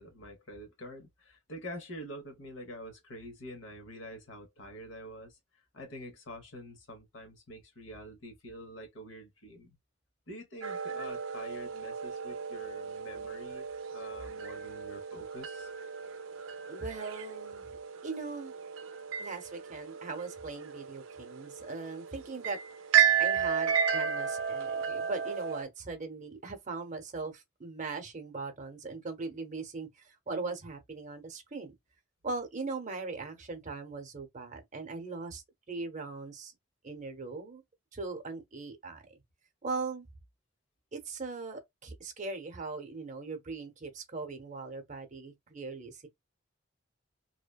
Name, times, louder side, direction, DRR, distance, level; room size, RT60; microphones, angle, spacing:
voice 1, 0.0-9.8 10.3-15.7, equal, 75° left, 0.9 m, -46 dB
sound 1, 10.6-25.6, right 8 dB, 80° right, 0.4 m, -33 dB
voice 2, 16.7-17.8 18.0-18.5 19.2-22.6 23.2-31.7 32.2-36.5 36.8-37.6 37.9-39.0 39.6-40.1 40.9-46.1, right 3 dB, 40° right, 0.7 m, -40 dB
2.8 x 2.1 x 2.2 m
head